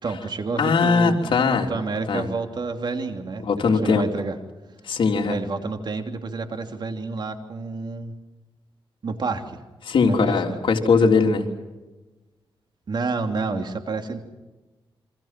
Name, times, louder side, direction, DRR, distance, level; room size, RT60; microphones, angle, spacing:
voice 1, 0.0-1.2 1.7-4.3 5.2-8.1 9.0-9.6 10.0-10.6 12.9-14.2, right 4 dB, 55° right, 5 dB, 3.1 m, -29 dB
voice 2, 0.6-1.7 2.1-2.3 3.4-4.0 4.8-5.4 9.8-11.5, left 4 dB, 70° left, 2 dB, 3.6 m, -20 dB
28.5 x 26.0 x 6.1 m, 1.1 s
cardioid pair, 80°, 9 cm